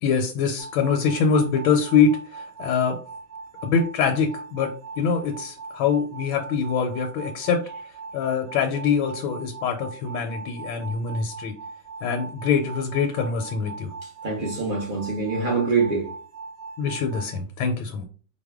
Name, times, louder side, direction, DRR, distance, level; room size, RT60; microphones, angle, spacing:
voice 1, 0.0-3.0 3.6-7.6 8.1-11.5 12.0-13.9 16.8-18.0, left 6 dB, 85° left, 1.4 m, -24 dB
sound 1, 0.6-17.4, right 4 dB, 75° right, 1.4 m, -40 dB
voice 2, 14.0-16.1, right 4 dB, 45° right, 0.6 m, -25 dB
4.7 x 2.2 x 3.5 m
omnidirectional pair, 2.1 m